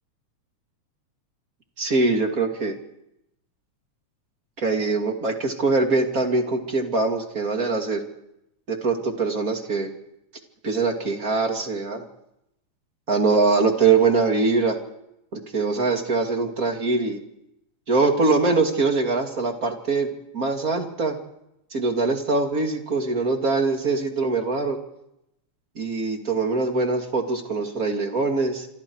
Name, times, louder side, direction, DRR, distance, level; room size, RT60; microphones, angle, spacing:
voice 1, 1.8-2.8 4.6-8.1 8.7-9.9 10.6-12.0 13.1-14.8 15.3-17.2 17.9-21.2 21.7-24.8 25.8-28.7, right 3 dB, 30° right, 4 dB, 2.7 m, -23 dB
27.5 x 25.5 x 4.8 m, 0.84 s
omnidirectional pair, 3.4 m